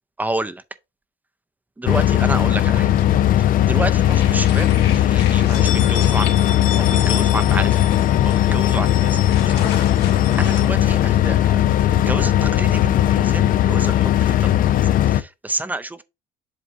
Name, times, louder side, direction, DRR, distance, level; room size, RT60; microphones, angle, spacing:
voice 1, 0.2-0.6 1.8-2.9 3.4-6.3 6.8-7.8 8.2-9.2 9.4-9.6 10.4-16.0, right 2 dB, 10° right, 0.6 m, -29 dB
sound 1, 1.9-15.2, left 12 dB, 55° left, 0.5 m, -17 dB
sound 2, 2.9-3.7 4.0-10.7, left 8 dB, 75° left, 1.7 m, -32 dB
7.6 x 2.7 x 4.6 m
cardioid pair, 110°, 17 cm